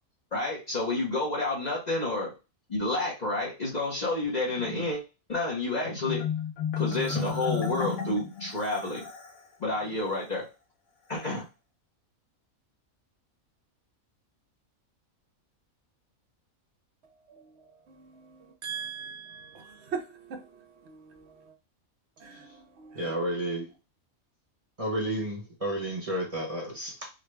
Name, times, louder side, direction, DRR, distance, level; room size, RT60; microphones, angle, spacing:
voice 1, 0.3-2.3 2.7-5.0 5.3-6.3 6.8-9.1 9.6-10.4 11.1-11.5, left 2 dB, 35° left, 0.8 m, -29 dB
Marimba xylophone, 6.1-9.4, left 7 dB, 75° left, 1.2 m, -32 dB
voice 2, 17.0-21.5 22.2-23.1, right 6 dB, 60° right, 0.9 m, -42 dB
voice 3, 22.9-23.7 24.8-27.1, right 1 dB, 25° right, 1.0 m, -32 dB
3.8 x 2.1 x 3.2 m
omnidirectional pair, 1.5 m